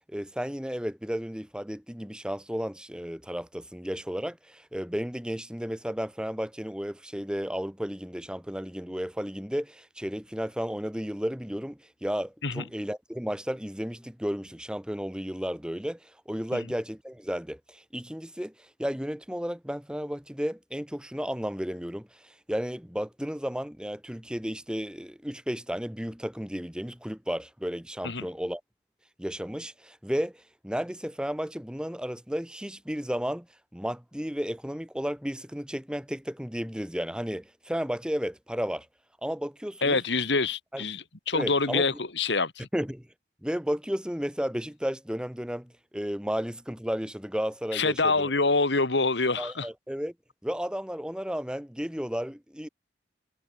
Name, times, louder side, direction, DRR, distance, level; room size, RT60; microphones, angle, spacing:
voice 1, 0.1-28.6 29.2-33.5 33.7-38.9 39.2-40.0 40.7-40.8 41.3-41.8 42.7-43.1 43.4-48.3 49.4-50.1 50.4-52.7, equal, 5° right, 1.5 m, -33 dB
voice 2, 39.8-42.7 47.7-49.7, left 3 dB, 75° left, 2.1 m, -26 dB
head